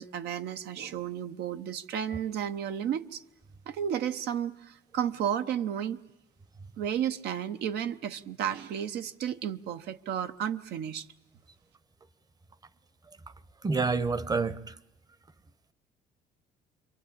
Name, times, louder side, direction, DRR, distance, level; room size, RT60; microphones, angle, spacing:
voice 1, 0.0-3.2 3.7-6.0 6.8-11.1, right 9 dB, 75° right, 1.0 m, -32 dB
voice 2, 13.6-14.7, right 4 dB, 20° right, 0.9 m, -28 dB
27.0 x 23.0 x 8.8 m
cardioid pair, 110°, 17 cm